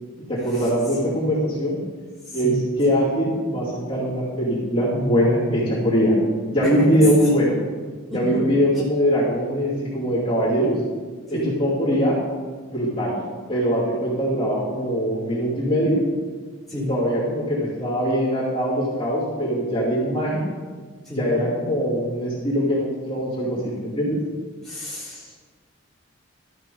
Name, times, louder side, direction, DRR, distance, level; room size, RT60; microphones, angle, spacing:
voice 1, 0.3-1.8 2.3-6.2 6.5-7.6 8.1-10.7 11.3-12.2 12.7-13.2 13.5-16.0 16.9-20.5 21.1-24.2, equal, 25° left, -9 dB, 2.7 m, -22 dB
voice 2, 2.3-2.6 6.9-7.0 8.1-8.5 11.3-11.5 16.7-16.9 21.0-21.4 24.6-25.5, left 1 dB, ahead, -10 dB, 3.1 m, -30 dB
13.0 x 5.6 x 5.4 m, 1.5 s
head